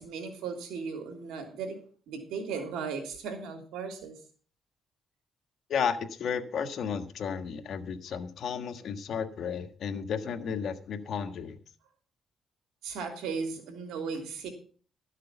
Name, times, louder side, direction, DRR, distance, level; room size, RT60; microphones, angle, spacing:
voice 1, 0.0-1.7 2.1-4.1 12.8-14.5, right 5 dB, 85° right, 5 dB, 3.1 m, -36 dB
voice 2, 5.7-11.6, left 7 dB, 65° left, 8 dB, 1.5 m, -33 dB
13.0 x 6.6 x 6.9 m, 0.42 s
cardioid pair, 90°, 0 cm